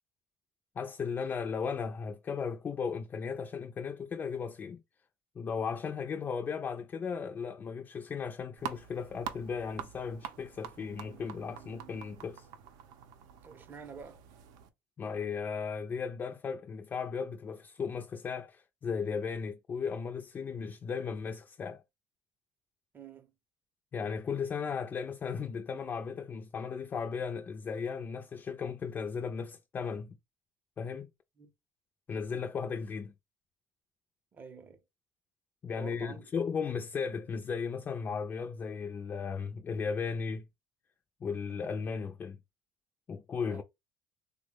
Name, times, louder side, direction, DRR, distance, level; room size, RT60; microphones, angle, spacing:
voice 1, 0.8-4.8 5.4-12.5 15.0-21.8 23.9-30.2 30.8-31.1 32.1-33.1 35.6-40.4 41.2-42.4 43.1-43.6, left 6 dB, 30° left, 0.3 m, -36 dB
sound 1, 8.6-14.7, right 9 dB, 75° right, 0.6 m, -46 dB
voice 2, 13.4-14.3 22.9-23.3 31.4-31.5 34.3-34.8 35.7-36.3 43.5-43.6, right 5 dB, 30° right, 0.6 m, -48 dB
3.4 x 2.1 x 3.2 m
cardioid pair, 125°, 7 cm